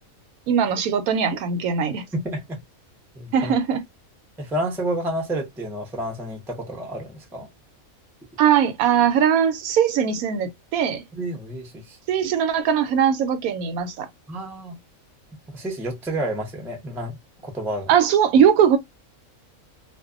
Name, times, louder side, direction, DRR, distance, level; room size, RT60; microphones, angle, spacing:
voice 1, 0.5-2.1 3.3-3.8 8.4-11.0 12.1-14.1 17.9-18.8, right 8 dB, 85° right, 1.1 m, -20 dB
voice 2, 2.1-2.6 3.2-3.5 4.4-7.5 11.1-12.0 14.3-14.8 15.5-17.2 17.4-18.0, right 1 dB, 5° right, 0.4 m, -30 dB
2.6 x 2.1 x 2.3 m
omnidirectional pair, 1.5 m